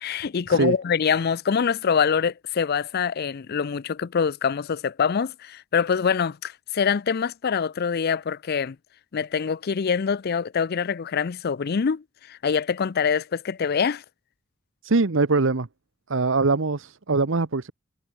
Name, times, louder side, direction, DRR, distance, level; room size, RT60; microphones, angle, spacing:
voice 1, 0.0-8.8 9.1-14.0, left 6 dB, 50° left, 0.4 m, -25 dB
voice 2, 14.8-15.7 16.1-17.7, right 3 dB, 65° right, 0.9 m, -22 dB
head